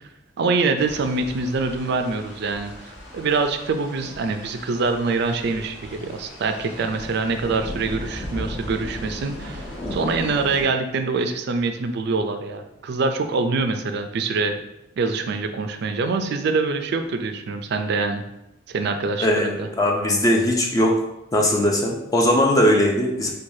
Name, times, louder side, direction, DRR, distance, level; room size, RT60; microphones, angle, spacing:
voice 1, 0.4-14.6 15.0-18.2 18.7-19.7, right 4 dB, 55° right, 7 dB, 0.3 m, -25 dB
sound 1, 0.8-10.6, left 1 dB, 55° left, 1.2 m, -36 dB
voice 2, 19.2-21.0 21.3-23.3, left 1 dB, 20° left, -1 dB, 0.4 m, -19 dB
4.6 x 2.3 x 2.7 m, 0.88 s
head